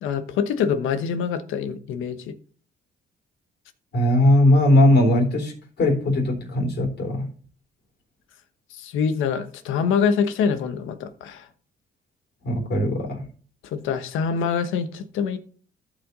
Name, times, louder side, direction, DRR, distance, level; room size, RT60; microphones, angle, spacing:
voice 1, 0.0-2.3 8.7-11.5 13.6-15.4, left 6 dB, 90° left, 1.1 m, -25 dB
voice 2, 3.9-5.5 5.8-7.3 12.4-13.2, left 1 dB, 60° left, 3.9 m, -19 dB
15.0 x 5.1 x 4.0 m
cardioid pair, 90°, 20 cm